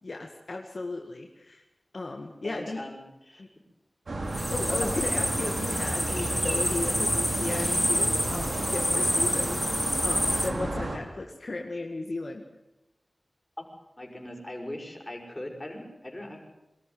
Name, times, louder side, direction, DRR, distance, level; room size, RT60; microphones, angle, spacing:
voice 1, 0.0-1.6 1.9-2.8 3.4-3.5 4.5-9.6 10.0-12.4, left 2 dB, 65° left, 2 dB, 2.0 m, -35 dB
voice 2, 2.4-3.0 3.3-3.5 4.8-5.0 14.0-16.4, left 1 dB, 25° left, 1 dB, 5.6 m, -39 dB
sound 1, 4.1-11.0, right 2 dB, 85° right, 3.4 m, -32 dB
sound 2, 4.3-10.5, equal, 5° left, 2.3 m, -28 dB
23.5 x 13.0 x 9.6 m, 0.96 s
wide cardioid pair, 50°, 0 cm